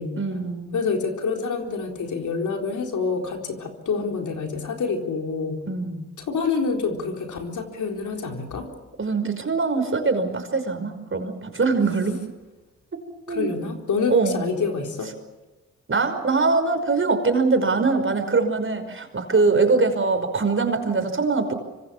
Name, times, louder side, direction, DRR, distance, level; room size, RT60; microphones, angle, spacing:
voice 1, 0.1-0.7 5.7-6.1 9.0-12.2 13.3-13.5 14.1-14.5 15.9-21.5, right 4 dB, 40° right, 7 dB, 5.5 m, -22 dB
voice 2, 0.7-5.6 6.2-8.7 13.3-15.1, left 4 dB, 70° left, 2 dB, 4.2 m, -27 dB
25.5 x 24.5 x 7.2 m, 1.2 s
supercardioid pair, 50°, 31 cm